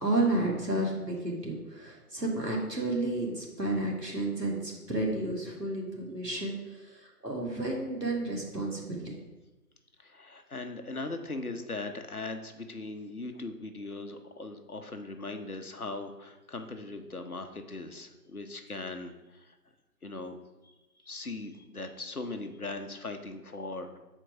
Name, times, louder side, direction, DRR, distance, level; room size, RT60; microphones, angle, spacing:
voice 1, 0.0-6.5 7.2-9.1, right 2 dB, 90° right, -1 dB, 2.0 m, -31 dB
voice 2, 10.0-19.6 20.0-20.4 20.6-20.7 21.0-24.0, left 2 dB, 65° left, 6 dB, 0.8 m, -39 dB
5.9 x 4.5 x 5.1 m, 1.1 s
figure-of-eight pair, 175°, 48 cm